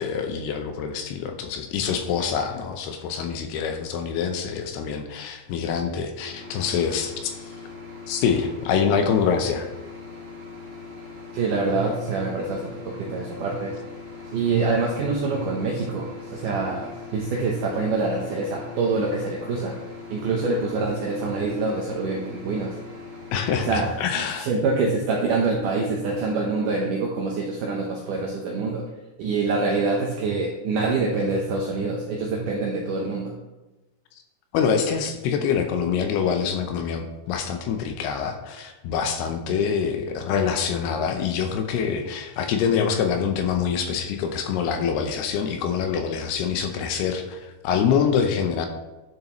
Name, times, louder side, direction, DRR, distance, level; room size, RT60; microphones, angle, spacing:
voice 1, 0.0-7.6 8.1-9.7 23.3-24.5 34.5-48.7, left 7 dB, 80° left, 6 dB, 2.6 m, -25 dB
sound 1, 6.2-23.8, left 4 dB, 20° right, 3.1 m, -41 dB
voice 2, 11.3-13.8 14.3-19.8 20.1-22.7 23.6-23.9 24.1-28.8 29.2-33.3, right 3 dB, 80° right, -1 dB, 1.9 m, -25 dB
10.5 x 6.9 x 3.1 m, 1.1 s
omnidirectional pair, 4.9 m